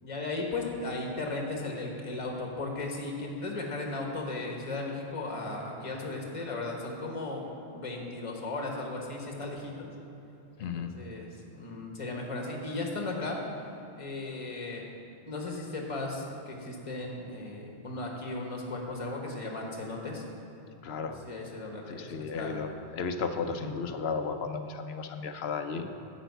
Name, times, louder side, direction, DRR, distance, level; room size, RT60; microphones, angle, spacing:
voice 1, 0.0-9.9 10.6-13.6 14.0-14.9 15.3-20.2 21.0-22.8 23.5-23.7, left 2 dB, 30° left, 0 dB, 1.2 m, -36 dB
voice 2, 10.6-10.9 20.8-21.2 21.9-22.7 22.9-25.9, left 5 dB, 70° left, 7 dB, 0.9 m, -34 dB
10.0 x 5.1 x 8.1 m, 2.9 s
omnidirectional pair, 1.1 m